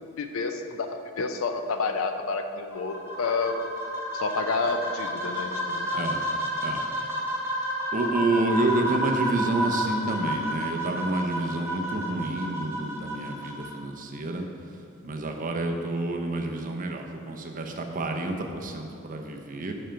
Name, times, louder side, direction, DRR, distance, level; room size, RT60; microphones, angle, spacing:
voice 1, 0.2-3.6 4.1-6.1, left 4 dB, 70° left, 7 dB, 0.5 m, -29 dB
sound 1, 2.7-13.7, equal, 10° right, 0.9 m, -31 dB
voice 2, 5.9-6.2 6.6-6.8 7.9-14.5 15.0-19.7, right 2 dB, 40° right, 3 dB, 0.6 m, -29 dB
5.7 x 5.4 x 5.0 m, 2.6 s
head